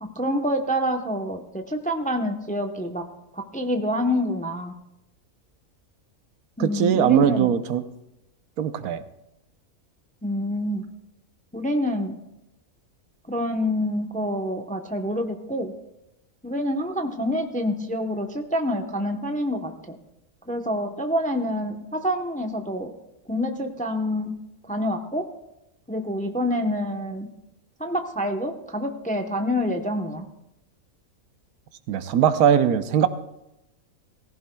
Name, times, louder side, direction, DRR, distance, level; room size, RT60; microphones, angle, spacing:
voice 1, 0.0-3.1 3.3-4.7 6.6-7.5 10.2-10.8 11.5-12.2 13.3-15.7 16.4-20.0 20.5-22.9 23.3-24.3 24.7-25.3 25.9-27.3 27.8-30.2, equal, 10° left, 4 dB, 0.6 m, -27 dB
voice 2, 6.6-7.8 8.6-9.0 31.9-33.1, right 9 dB, 85° right, 11 dB, 1.2 m, -20 dB
17.5 x 15.5 x 2.3 m, 0.86 s
omnidirectional pair, 1.5 m